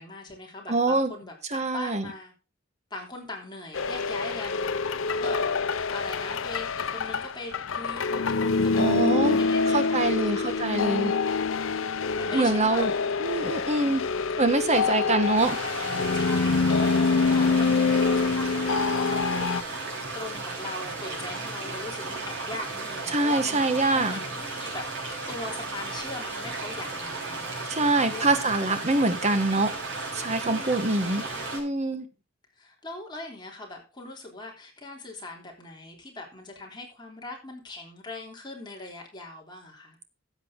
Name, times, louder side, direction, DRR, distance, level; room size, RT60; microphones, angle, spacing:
voice 1, 0.0-2.3 2.9-5.5 5.9-11.7 12.1-14.2 14.7-15.0 16.1-24.9 25.3-29.1 30.4-31.7 32.6-40.0, left 2 dB, 20° left, 3.4 m, -41 dB
voice 2, 0.7-1.1 1.5-2.1 8.8-9.4 9.7-11.1 12.3-12.9 13.2-14.0 14.4-15.6 23.1-24.1 27.7-29.7 30.1-31.3 31.5-32.0, right 2 dB, 35° right, 1.4 m, -24 dB
sound 1, 3.7-19.6, left 4 dB, 70° left, 0.7 m, -26 dB
sound 2, 15.4-31.6, right 3 dB, 65° right, 6.0 m, -35 dB
13.5 x 8.1 x 3.8 m
head